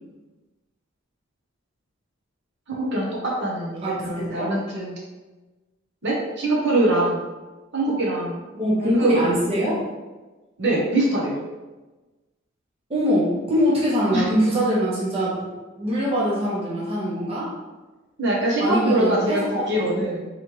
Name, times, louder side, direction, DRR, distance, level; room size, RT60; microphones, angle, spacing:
voice 1, 2.7-4.9 6.0-7.3 7.7-8.4 8.8-9.3 10.6-11.4 14.1-14.2 18.2-20.3, right 1 dB, 60° right, -3 dB, 1.0 m, -23 dB
voice 2, 3.8-4.5 7.9-8.0 8.6-9.8 12.9-17.5 18.6-19.7, equal, 30° right, -6 dB, 0.9 m, -23 dB
4.0 x 3.1 x 3.1 m, 1.2 s
head